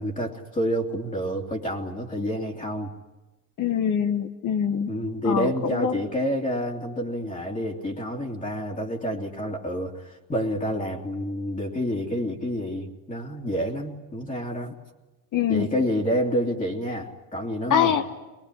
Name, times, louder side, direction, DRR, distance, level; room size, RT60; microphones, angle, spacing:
voice 1, 0.0-2.9 4.9-14.7 15.5-18.0, equal, 20° left, -1 dB, 2.7 m, -28 dB
voice 2, 3.6-4.9 5.2-6.0 15.3-15.7 17.7-18.0, left 8 dB, 50° left, 8 dB, 1.6 m, -24 dB
23.0 x 20.5 x 9.9 m, 1.2 s
supercardioid pair, 80°, 38 cm